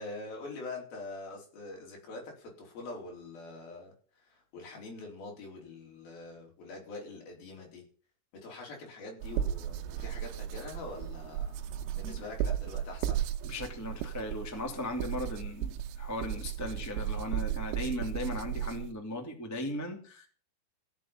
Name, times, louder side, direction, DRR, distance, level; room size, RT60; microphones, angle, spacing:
voice 1, 0.0-7.9 8.3-11.6 11.9-13.2, left 3 dB, 50° left, -1 dB, 6.0 m, -44 dB
sound 1, 9.2-18.9, right 10 dB, 85° right, 3.4 m, -35 dB
voice 2, 13.4-20.3, left 1 dB, 15° left, 2 dB, 0.6 m, -37 dB
15.5 x 7.7 x 7.4 m, 0.43 s
omnidirectional pair, 5.8 m